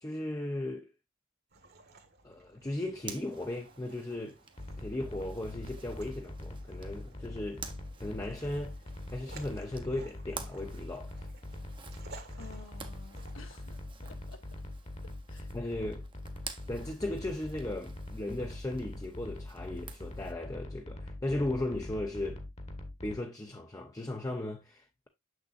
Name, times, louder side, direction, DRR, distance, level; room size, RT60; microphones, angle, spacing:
voice 1, 0.0-0.9 2.2-4.4 4.8-7.6 8.0-8.7 9.1-11.1 15.5-16.1 16.7-22.4 23.0-25.1, left 1 dB, 15° left, 0.6 m, -36 dB
sound 1, 1.5-13.7, right 3 dB, 50° right, 1.5 m, -56 dB
Zipper (clothing), 3.0-20.3, right 5 dB, 25° right, 0.8 m, -51 dB
sound 2, 4.6-23.2, left 1 dB, 30° left, 1.2 m, -43 dB
voice 2, 12.4-14.5 15.0-15.5, left 4 dB, 75° left, 1.2 m, -53 dB
6.9 x 6.3 x 2.4 m
head